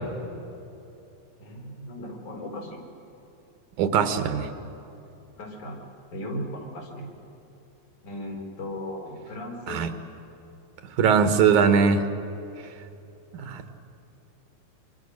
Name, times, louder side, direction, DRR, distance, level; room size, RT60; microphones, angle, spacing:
voice 1, 1.4-2.8 5.4-5.8 6.1-7.1 8.0-9.8, left 1 dB, 80° left, -1 dB, 5.4 m, -36 dB
voice 2, 3.8-4.5 9.7-9.9 11.0-12.0 13.4-13.6, right 6 dB, 85° right, 8 dB, 2.8 m, -20 dB
25.0 x 25.0 x 6.4 m, 2.8 s
omnidirectional pair, 3.3 m